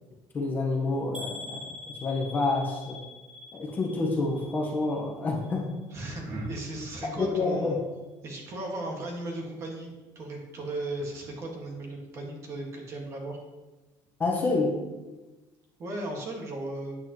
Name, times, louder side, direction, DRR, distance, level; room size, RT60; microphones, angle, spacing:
voice 1, 0.3-1.7 2.0-3.0 3.5-5.7 7.2-7.7 14.2-14.8, left 3 dB, 20° left, 0 dB, 1.2 m, -28 dB
sound 1, 1.1-5.1 5.4-6.0 6.5-6.6 7.0-7.1, left 3 dB, 10° right, 1.0 m, -44 dB
voice 2, 5.9-7.8 8.2-13.4 15.8-17.0, right 2 dB, 35° right, 0 dB, 1.9 m, -36 dB
9.0 x 8.9 x 3.1 m, 1.2 s
cardioid pair, 170°, 8 cm